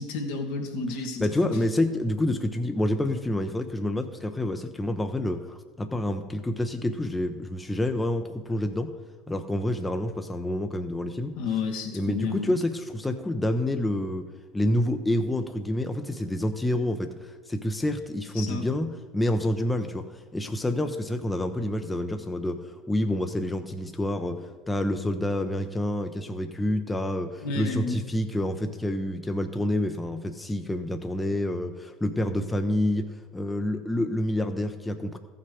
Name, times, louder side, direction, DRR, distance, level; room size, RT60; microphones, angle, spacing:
voice 1, 0.0-1.3 11.4-12.6 18.3-18.7 27.4-28.0, left 4 dB, 70° left, 2 dB, 1.6 m, -31 dB
voice 2, 1.2-8.9 9.3-11.3 11.9-14.3 14.5-17.1 17.5-20.1 20.3-35.2, left 1 dB, 10° left, 6 dB, 0.8 m, -28 dB
14.5 x 5.9 x 5.0 m, 1.4 s
hypercardioid pair, 75°, 0 cm